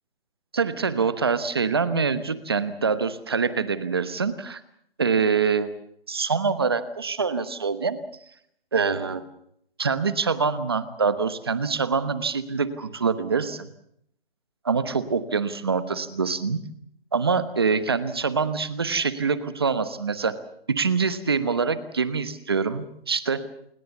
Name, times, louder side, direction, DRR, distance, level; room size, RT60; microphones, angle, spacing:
voice 1, 0.5-4.6 5.0-5.7 6.1-8.0 8.7-9.2 9.8-13.7 14.6-16.6 17.1-20.4 20.7-23.4, right 5 dB, 25° right, 13 dB, 1.1 m, -25 dB
28.0 x 19.0 x 7.2 m, 0.73 s
hypercardioid pair, 180°, 30 cm